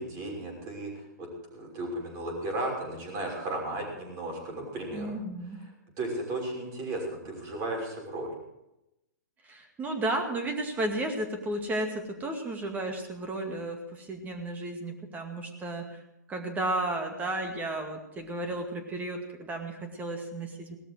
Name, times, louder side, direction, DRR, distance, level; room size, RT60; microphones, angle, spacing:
voice 1, 0.0-5.2 6.0-8.3, right 1 dB, 30° right, 0 dB, 6.0 m, -35 dB
voice 2, 4.9-5.6 9.4-16.0 16.3-20.8, right 1 dB, 15° right, 4 dB, 2.1 m, -33 dB
18.0 x 13.5 x 4.8 m, 0.89 s
figure-of-eight pair, 110°, 10 cm